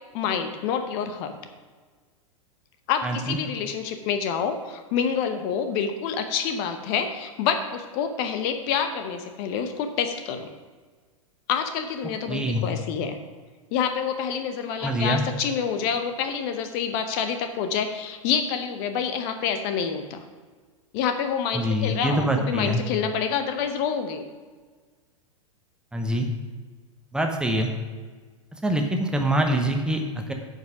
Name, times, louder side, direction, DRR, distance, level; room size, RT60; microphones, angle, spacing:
voice 1, 0.1-1.4 2.9-10.5 11.5-13.2 13.7-20.2 20.9-24.2, left 7 dB, 40° left, 8 dB, 0.8 m, -27 dB
voice 2, 3.0-3.4 12.3-12.6 14.8-15.2 21.5-22.8 25.9-26.3 27.1-27.7 28.5-30.3, right 1 dB, 5° right, 3 dB, 0.9 m, -25 dB
9.2 x 5.4 x 6.1 m, 1.4 s
figure-of-eight pair, 95°, 17 cm